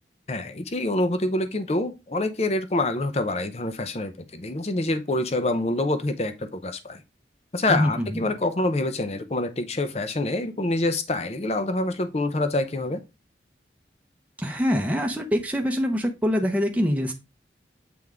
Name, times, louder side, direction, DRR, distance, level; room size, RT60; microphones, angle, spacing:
voice 1, 0.3-7.0 7.5-13.0, left 2 dB, 35° left, 0.6 m, -26 dB
voice 2, 7.7-8.2 14.4-17.1, equal, 10° right, 0.7 m, -24 dB
7.7 x 3.5 x 3.6 m
head